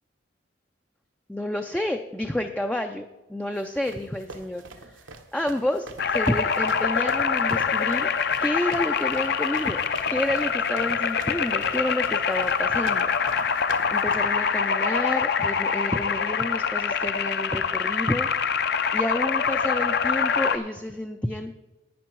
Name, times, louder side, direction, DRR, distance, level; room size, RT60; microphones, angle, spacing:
voice 1, 1.3-5.0 5.3-8.1 8.4-9.8 10.1-13.6 13.9-18.3 18.9-21.6, left 1 dB, 5° left, 5 dB, 0.3 m, -29 dB
sound 1, 3.6-14.2, right 3 dB, 85° right, 1.1 m, -43 dB
sound 2, 6.0-20.6, left 6 dB, 55° left, 0.6 m, -25 dB
11.5 x 9.2 x 4.6 m, 1.1 s
head